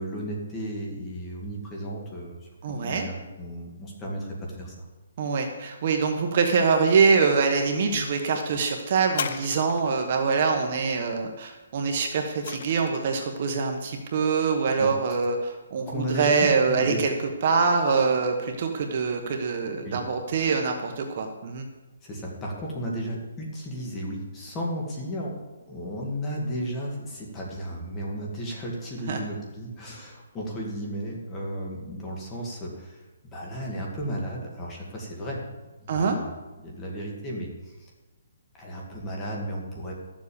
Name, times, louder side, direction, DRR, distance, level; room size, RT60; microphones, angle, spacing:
voice 1, 0.0-4.9 14.8-14.9 15.9-17.0 19.8-20.0 22.0-25.4 25.7-33.0 33.3-36.3 36.6-37.9 38.5-39.9, equal, 15° left, -2 dB, 1.9 m, -34 dB
voice 2, 2.6-3.1 5.2-17.1 17.4-21.7 29.1-29.2 35.9-36.2, right 5 dB, 35° right, 4 dB, 1.2 m, -24 dB
sound 1, 9.1-10.1 11.8-13.2 14.0-14.1, left 7 dB, 45° left, 0.7 m, -35 dB
12.5 x 7.4 x 7.0 m, 1.1 s
hypercardioid pair, 170°, 0 cm